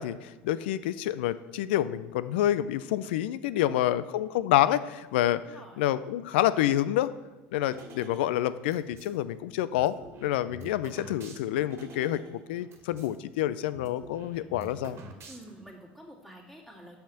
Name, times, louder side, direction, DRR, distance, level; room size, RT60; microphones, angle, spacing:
voice 1, 0.0-5.4 5.8-7.1 7.5-9.9 10.2-15.0, left 13 dB, 80° left, 15 dB, 0.4 m, -28 dB
voice 2, 3.7-4.0 5.4-5.8 15.3-17.0, equal, ahead, -1 dB, 2.3 m, -49 dB
sound 1, 7.7-9.2 9.7-13.2 13.4-13.5 13.7-15.7, right 3 dB, 50° right, 1.7 m, -48 dB
6.3 x 5.8 x 6.8 m, 1.2 s
hypercardioid pair, 80°, 6 cm